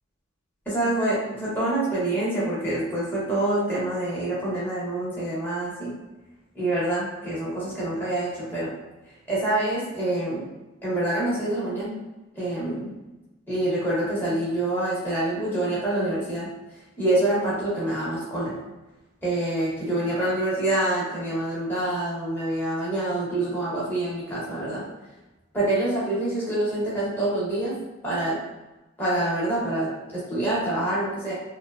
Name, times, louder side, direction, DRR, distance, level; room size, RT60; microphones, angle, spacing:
voice 1, 0.7-5.9 6.5-8.7 9.3-10.4 10.8-12.0 12.3-12.9 13.5-16.5 17.0-18.6 19.2-24.8 25.5-27.8 28.0-28.4 29.0-31.3, right 1 dB, 10° left, -9 dB, 0.8 m, -26 dB
2.8 x 2.1 x 2.3 m, 1.1 s
head